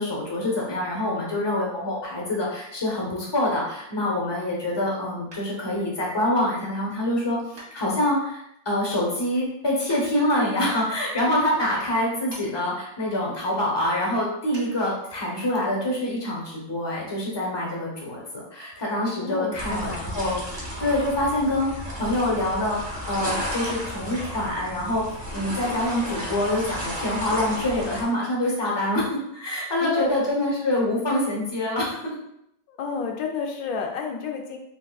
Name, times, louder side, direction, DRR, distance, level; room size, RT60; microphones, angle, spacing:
voice 1, 0.0-25.1 25.3-32.2, left 1 dB, 35° left, -3 dB, 0.4 m, -26 dB
sound 1, 5.3-5.9 7.6-8.3 9.9-10.1 12.3-12.5 12.8-12.9 14.5-14.7 15.1-15.2, right 1 dB, 55° right, 1.1 m, -44 dB
voice 2, 19.2-20.1 29.8-30.0 32.7-34.6, left 5 dB, 75° left, 2 dB, 1.0 m, -30 dB
sound 2, 19.6-28.0, equal, 25° right, 0.7 m, -33 dB
3.4 x 3.0 x 2.3 m, 0.78 s
omnidirectional pair, 1.6 m